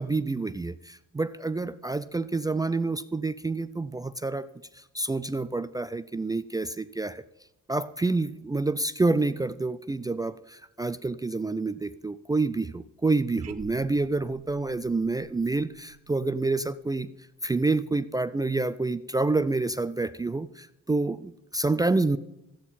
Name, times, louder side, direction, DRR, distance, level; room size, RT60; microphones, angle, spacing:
voice 1, 0.0-4.5 4.7-7.2 7.7-17.1 17.4-22.2, right 3 dB, 15° right, 14 dB, 0.3 m, -28 dB
sound 1, 13.3-17.5, right 8 dB, 55° right, 0.8 m, -49 dB
14.0 x 8.9 x 4.3 m, 0.87 s
cardioid pair, 90°, 30 cm